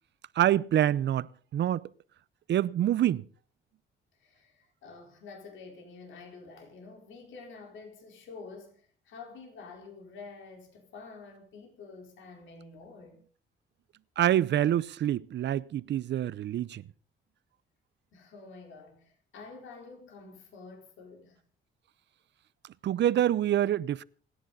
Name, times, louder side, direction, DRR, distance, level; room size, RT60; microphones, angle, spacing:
voice 1, 0.4-1.9 2.5-3.3 14.2-16.8 22.8-24.0, right 11 dB, 60° right, 0.7 m, -26 dB
voice 2, 4.2-13.2 18.1-21.4, left 4 dB, 75° left, 4.3 m, -48 dB
29.0 x 10.5 x 4.1 m
cardioid pair, 90°, 20 cm